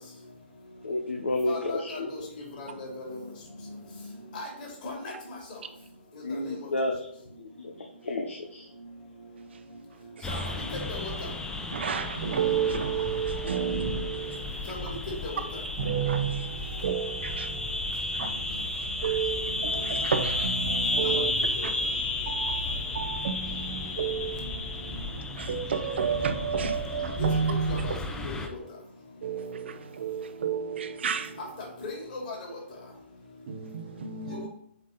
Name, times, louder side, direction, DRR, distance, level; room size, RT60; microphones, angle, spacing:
voice 1, 0.8-2.3 6.2-7.1 7.4-8.7 27.3-27.4, left 2 dB, 75° left, 1.0 m, -31 dB
voice 2, 1.5-2.0 2.6-2.9 4.3-4.5 4.8-4.9 10.3-10.4 10.7-11.1 14.7-14.8 15.2-15.3 21.0-21.1 27.7-27.9 28.2-28.3 31.8-32.4, left 3 dB, 45° left, 2.8 m, -36 dB
sound 1, 10.2-28.5, left 2 dB, 10° left, 0.8 m, -33 dB
voice 3, 11.7-14.8 15.8-21.3 21.6-21.7 22.3-28.0 29.2-31.4 33.5-34.5, right 7 dB, 65° right, 0.9 m, -31 dB
8.2 x 3.7 x 4.0 m
hypercardioid pair, 130°, 7 cm